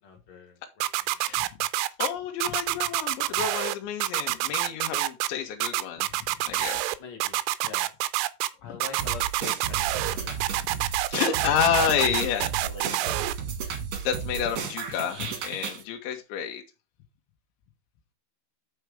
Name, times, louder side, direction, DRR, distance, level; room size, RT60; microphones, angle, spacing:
voice 1, 0.0-0.9 1.1-1.2 7.0-7.9 8.6-10.4 12.0-13.2, left 5 dB, 50° left, 1.6 m, -44 dB
sound 1, 0.8-2.1 2.4-3.7 4.0-5.3 5.6-7.0 7.2-8.5 8.8-10.1 10.4-13.3, right 17 dB, 90° right, 3.1 m, -27 dB
voice 2, 1.2-1.5 2.0-6.1 6.4-6.9 8.6-8.8 11.1-12.5 13.7-13.8 14.0-16.6, left 8 dB, 75° left, 3.5 m, -29 dB
sound 2, 9.0-15.8, right 6 dB, 55° right, 2.1 m, -34 dB
9.9 x 4.7 x 4.9 m
omnidirectional pair, 5.5 m